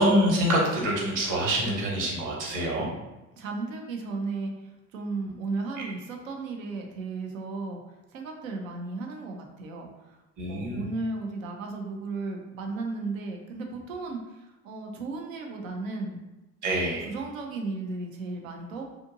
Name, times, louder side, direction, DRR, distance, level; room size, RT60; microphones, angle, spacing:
voice 1, 0.0-2.9 10.4-10.9 16.6-17.1, equal, 50° right, -2 dB, 1.1 m, -25 dB
voice 2, 3.4-7.8 8.1-10.2 10.5-16.2 16.6-18.8, right 3 dB, 90° right, 2 dB, 0.6 m, -35 dB
2.7 x 2.5 x 2.5 m, 1.0 s
hypercardioid pair, 70°, 39 cm